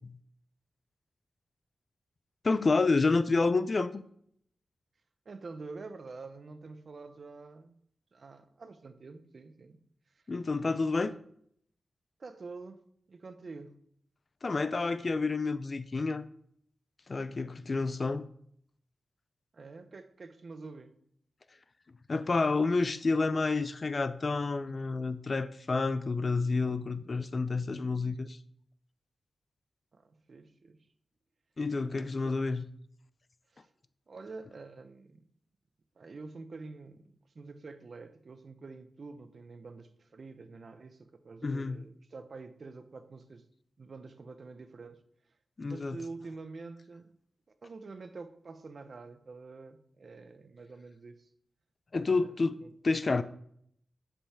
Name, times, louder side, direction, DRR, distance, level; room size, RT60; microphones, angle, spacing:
voice 1, 2.4-4.0 10.3-11.1 14.4-16.2 17.1-18.2 22.1-28.4 31.6-32.6 41.4-41.8 45.6-46.0 51.9-52.5 52.8-53.2, left 3 dB, 35° left, 0.4 m, -29 dB
voice 2, 5.2-7.8 8.1-9.8 10.1-10.2 11.1-11.2 12.2-13.8 19.5-20.9 29.9-30.9 31.9-32.4 33.5-33.7 34.1-35.2 36.0-43.4 43.8-45.0 45.7-47.1 47.6-51.3 52.0-52.7, right 3 dB, 40° right, 0.7 m, -47 dB
7.3 x 5.4 x 6.9 m
wide cardioid pair, 180°, 0 cm